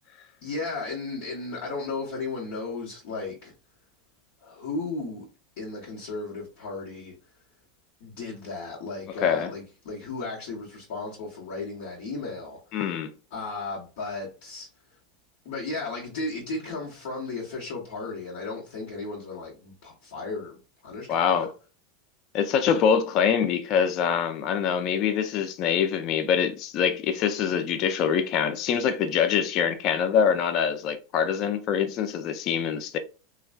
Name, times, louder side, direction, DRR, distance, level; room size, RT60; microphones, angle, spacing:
voice 1, 0.4-3.5 4.4-5.3 5.6-7.1 8.0-12.9 13.3-14.7 15.4-20.6 20.8-21.5, left 3 dB, 65° left, 1.1 m, -35 dB
voice 2, 9.2-9.5 12.7-13.1 21.1-21.5 22.3-33.0, left 7 dB, 50° left, 0.4 m, -24 dB
3.2 x 2.2 x 2.2 m
hypercardioid pair, 95°, 0 cm